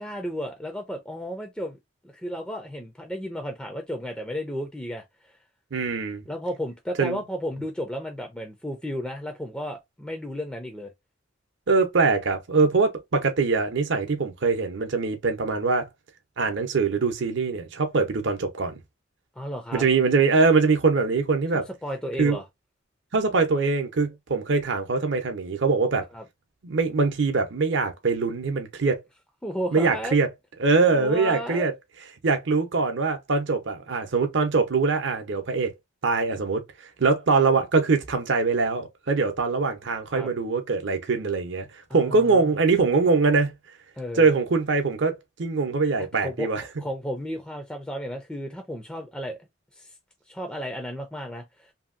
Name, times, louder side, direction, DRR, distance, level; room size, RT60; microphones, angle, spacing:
voice 1, 0.0-1.8 2.1-5.3 6.3-10.9 19.4-19.9 21.8-22.5 26.1-26.2 29.4-30.2 30.9-31.7 40.1-40.3 41.9-42.5 44.0-44.3 46.2-46.5 46.8-49.4 49.7-49.9 50.3-51.7, equal, 5° left, 0.4 m, -33 dB
voice 2, 5.7-6.2 7.0-7.2 11.7-15.9 16.4-18.7 19.7-21.6 22.2-22.4 23.1-26.1 26.6-29.0 29.7-30.3 30.6-31.7 32.2-35.7 36.0-36.6 37.0-41.7 41.9-43.5 44.2-45.1 45.4-46.6, right 4 dB, 65° right, 0.7 m, -23 dB
2.7 x 2.7 x 2.5 m
head